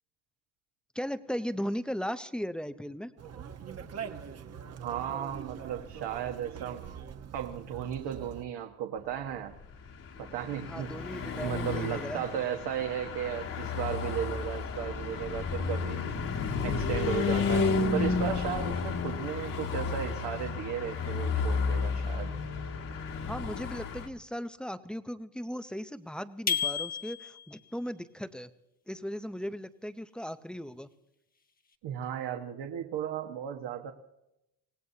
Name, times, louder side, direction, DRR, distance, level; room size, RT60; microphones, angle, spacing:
voice 1, 0.9-3.1 10.7-12.3 23.3-28.5 28.9-30.9, equal, ahead, 11 dB, 0.5 m, -37 dB
Conversation, 3.2-8.5, right 7 dB, 35° right, 1.1 m, -43 dB
voice 2, 4.8-6.9 7.3-9.5 10.2-10.9 11.3-16.1 16.6-22.3 31.8-33.9, right 9 dB, 65° right, 3 dB, 1.4 m, -35 dB
Car passing by / Truck, 9.7-24.1, left 4 dB, 45° left, 1.8 m, -32 dB
sound 1, 26.5-27.6, left 7 dB, 20° left, 1.2 m, -31 dB
25.5 x 17.5 x 2.8 m, 0.87 s
cardioid pair, 125°, 45 cm